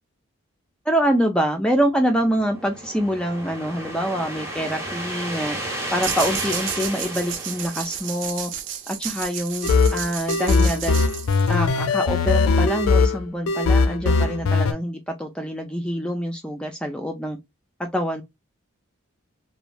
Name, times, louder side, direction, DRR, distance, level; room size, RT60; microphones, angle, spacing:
voice 1, 0.9-5.6 5.9-8.5 8.9-11.0 11.5-17.4 17.8-18.2, equal, 5° left, 0.3 m, -25 dB
sound 1, 1.9-8.5, right 1 dB, 15° right, 0.8 m, -33 dB
sound 2, 6.0-11.7, right 9 dB, 60° right, 0.5 m, -32 dB
sound 3, 9.6-14.7, left 4 dB, 90° left, 0.4 m, -20 dB
3.0 x 2.2 x 2.4 m
head